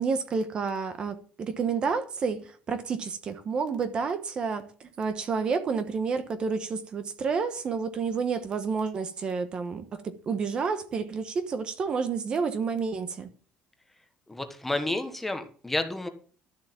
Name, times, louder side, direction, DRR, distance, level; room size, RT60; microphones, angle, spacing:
voice 1, 0.0-13.3, right 5 dB, 30° right, 1.1 m, -30 dB
voice 2, 14.3-16.1, left 2 dB, 5° left, 1.3 m, -30 dB
12.5 x 7.3 x 7.4 m
cardioid pair, 180°, 3 cm